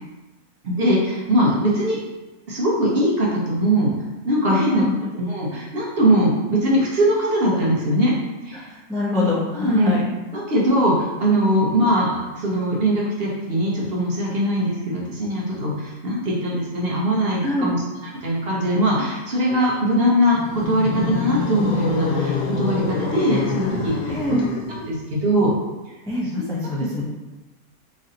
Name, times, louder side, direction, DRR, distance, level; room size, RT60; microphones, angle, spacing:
voice 1, 0.6-2.0 2.5-3.9 4.2-4.8 5.1-8.1 8.4-8.7 9.5-10.0 10.3-24.2 24.7-25.5 26.4-26.5, equal, 50° right, -5 dB, 0.9 m, -21 dB
voice 2, 4.5-4.9 8.5-8.6 8.9-10.1 17.4-17.7 24.1-24.5 26.1-27.0, left 2 dB, 5° left, -6 dB, 0.3 m, -24 dB
sound 1, 20.3-24.9, left 5 dB, 90° left, 1.1 m, -26 dB
3.1 x 2.7 x 3.8 m, 1.1 s
omnidirectional pair, 1.5 m